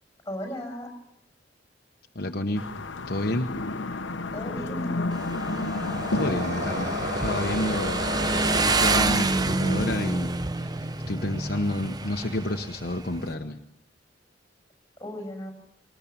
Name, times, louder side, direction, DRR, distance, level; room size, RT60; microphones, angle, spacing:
voice 1, 0.2-0.9 4.3-5.0 15.0-15.5, equal, 15° left, 5 dB, 6.3 m, -35 dB
voice 2, 2.1-2.6 3.1-3.5 6.1-13.6, left 1 dB, 55° left, 4 dB, 1.1 m, -30 dB
sound 1, 2.6-9.0, left 3 dB, 85° left, 1.0 m, -31 dB
Motorcycle, 5.1-13.3, right 3 dB, 20° right, 0.7 m, -28 dB
sound 2, 5.5-9.4, right 2 dB, 40° right, 1.1 m, -34 dB
22.0 x 20.0 x 7.1 m, 0.76 s
head